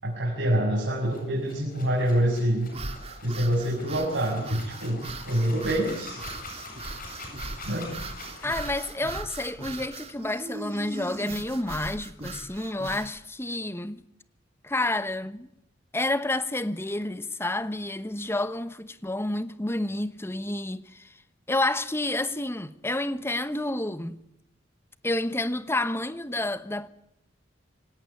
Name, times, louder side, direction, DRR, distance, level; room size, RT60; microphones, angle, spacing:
voice 1, 0.0-2.7 3.2-6.2 7.6-7.9, right 1 dB, 75° right, 6.5 m, -26 dB
sound 1, 1.0-8.9, left 3 dB, 50° left, 7.9 m, -45 dB
sound 2, 2.7-13.1, right 3 dB, 35° right, 2.9 m, -39 dB
voice 2, 8.4-14.0 14.6-15.5 15.9-21.1 21.5-24.2 25.0-26.9, left 1 dB, 15° left, 1.1 m, -29 dB
25.0 x 18.0 x 9.9 m
head